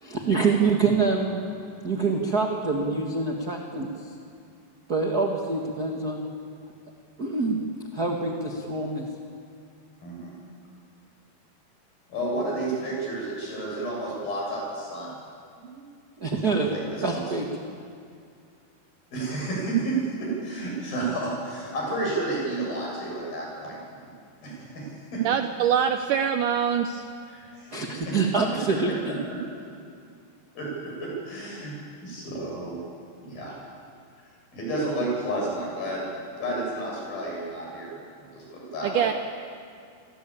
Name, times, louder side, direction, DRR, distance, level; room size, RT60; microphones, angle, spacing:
voice 1, 0.0-1.4 1.8-3.9 4.9-6.3 7.2-7.6 7.9-9.1 16.2-16.7 17.0-17.5 27.7-29.2, right 4 dB, 40° right, 1 dB, 1.4 m, -25 dB
voice 2, 10.0-10.3 12.1-15.2 15.6-15.9 16.4-17.2 19.1-23.8 24.4-25.2 27.3-27.7 28.1-28.2 28.7-28.9 30.6-31.7 32.0-32.8 33.2-33.6 34.5-36.0 36.4-39.1, right 2 dB, 60° left, -3 dB, 9.2 m, -31 dB
voice 3, 25.2-27.1 38.8-39.1, right 8 dB, 80° right, 8 dB, 1.8 m, -24 dB
28.5 x 19.5 x 8.8 m, 2.4 s
omnidirectional pair, 4.7 m